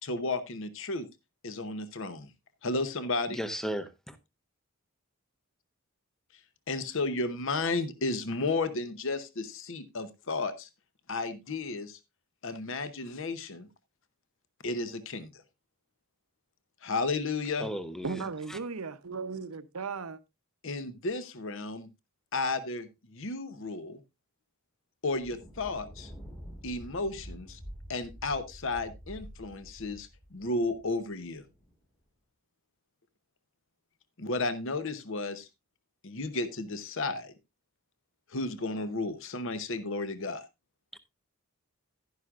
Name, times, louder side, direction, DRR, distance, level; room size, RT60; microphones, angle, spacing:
voice 1, 0.0-1.1 1.4-2.3 2.6-3.4 6.7-10.7 11.1-12.0 12.4-13.7 14.6-15.3 16.8-17.7 20.6-21.9 22.3-24.0 25.0-26.1 26.6-27.6 27.9-31.4 34.2-35.5 36.0-37.3 38.3-40.4, left 3 dB, 60° left, 0.8 m, -33 dB
voice 2, 3.3-4.2 17.6-18.2 18.5-18.6, equal, ahead, 0.6 m, -35 dB
voice 3, 18.0-20.2, right 4 dB, 80° right, 0.8 m, -36 dB
Thunder, 25.2-31.7, equal, 20° left, 1.6 m, -48 dB
11.5 x 10.5 x 2.4 m
head